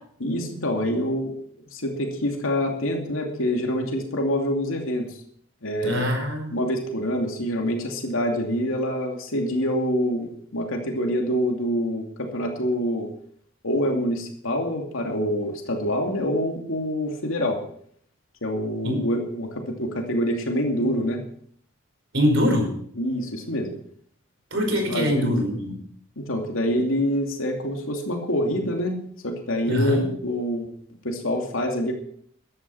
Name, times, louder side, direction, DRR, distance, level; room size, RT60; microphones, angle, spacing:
voice 1, 0.2-1.3 1.7-5.1 5.6-6.2 6.5-13.1 13.6-17.6 18.4-21.2 23.0-23.7 24.7-25.3 26.2-30.7 31.0-31.9, equal, 80° left, 2 dB, 2.6 m, -26 dB
voice 2, 5.8-6.6 18.8-19.0 22.1-22.7 24.5-25.8 29.6-30.1, left 1 dB, 60° right, 3 dB, 5.1 m, -23 dB
14.5 x 10.5 x 5.7 m, 0.62 s
head